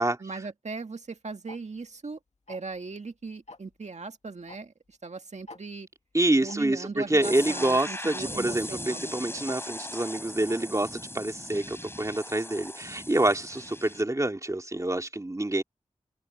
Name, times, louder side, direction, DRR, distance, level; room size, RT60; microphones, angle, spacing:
voice 1, 0.2-2.2 2.5-5.9 6.4-9.2, right 4 dB, 70° right, 2.0 m, -39 dB
Tick-tock, 1.5-1.6 2.5-2.8 3.5-3.7 4.5-4.6 4.9-5.0 5.5-5.6 6.5-6.6 7.5-7.6 8.5-8.6 9.5-9.6 10.5-10.6, left 2 dB, 70° left, 2.2 m, -45 dB
voice 2, 6.1-15.6, right 1 dB, 25° right, 2.7 m, -27 dB
sound 1, 7.2-14.0, left 1 dB, 20° left, 6.0 m, -39 dB
cardioid pair, 40°, 12 cm